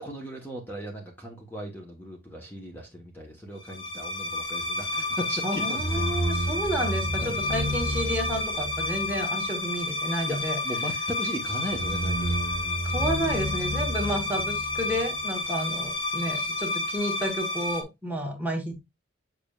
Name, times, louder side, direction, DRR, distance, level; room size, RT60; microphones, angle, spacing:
voice 1, 0.0-5.8 6.3-6.5 7.2-7.4 10.3-10.4 10.6-12.4 16.3-16.5, equal, 10° left, 1.0 m, -37 dB
sound 1, 3.7-17.8, left 1 dB, 65° left, 1.6 m, -29 dB
voice 2, 5.4-10.6 12.8-18.8, equal, 10° right, 1.2 m, -31 dB
7.2 x 5.9 x 2.3 m
head